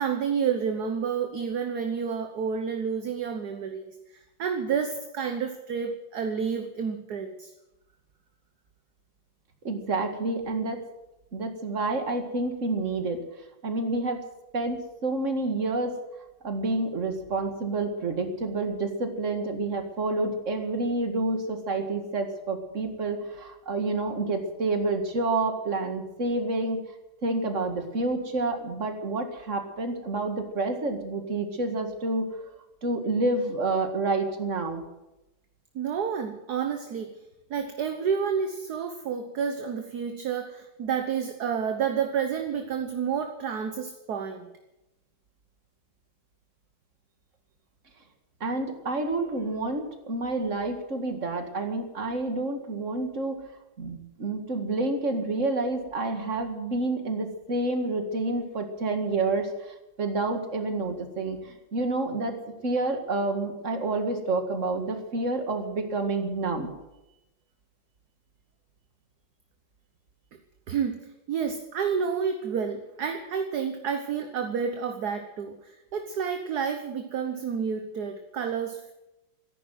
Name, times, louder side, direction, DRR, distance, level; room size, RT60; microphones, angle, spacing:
voice 1, 0.0-3.9 4.4-7.5 35.7-37.1 37.5-44.5 70.7-71.0 71.3-78.9, right 7 dB, 55° right, 6 dB, 1.6 m, -30 dB
voice 2, 9.6-10.8 11.3-13.2 13.6-14.2 14.5-16.0 16.4-26.8 27.2-32.3 32.8-34.8 48.4-53.4 53.8-62.4 62.6-66.7, right 2 dB, 40° right, 6 dB, 2.2 m, -29 dB
14.0 x 11.0 x 9.4 m, 0.94 s
omnidirectional pair, 2.1 m